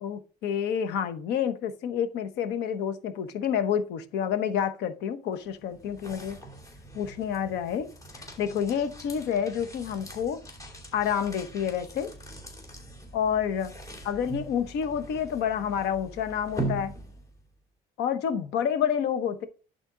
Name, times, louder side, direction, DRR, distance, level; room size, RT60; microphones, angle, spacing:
voice 1, 0.0-6.4 6.9-7.9 8.2-10.4 10.9-12.1 13.1-13.7 14.0-16.9 18.0-19.5, left 8 dB, 85° left, 1.0 m, -29 dB
sound 1, 5.3-17.5, right 2 dB, 20° left, 2.8 m, -41 dB
11.0 x 4.3 x 3.8 m
cardioid pair, 110°, 17 cm